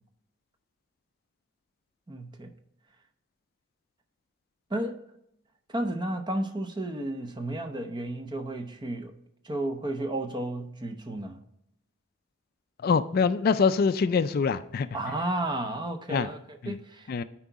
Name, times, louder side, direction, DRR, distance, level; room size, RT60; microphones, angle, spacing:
voice 1, 2.1-2.5 4.7-5.0 5.7-9.1 9.4-11.4 14.9-17.1, right 1 dB, 20° right, 0.7 m, -32 dB
voice 2, 12.8-14.9 16.1-16.3 16.6-16.8 17.1-17.2, left 5 dB, 50° left, 0.3 m, -24 dB
9.7 x 4.6 x 4.0 m
head